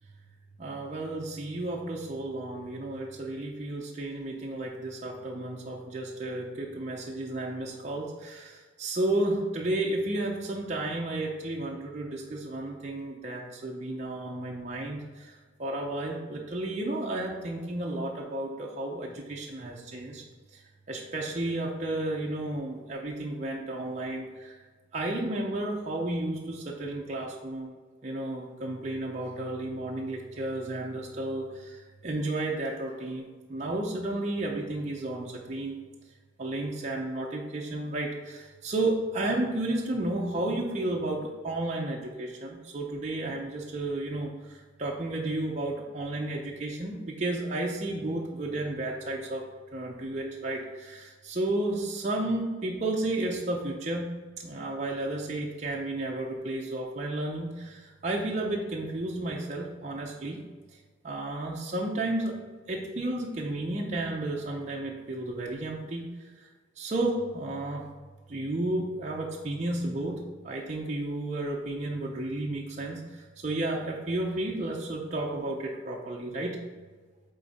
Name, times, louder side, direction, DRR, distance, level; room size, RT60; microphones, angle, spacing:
voice 1, 0.6-15.3 15.6-20.2 20.5-20.6 20.9-24.6 24.9-27.7 28.0-35.8 36.4-49.4 49.7-54.1 54.4-60.4 61.0-62.4 62.7-66.5 66.8-67.9 68.3-70.2 70.4-76.6, right 2 dB, 35° right, -1 dB, 0.6 m, -32 dB
8.3 x 3.8 x 4.1 m, 1.4 s
head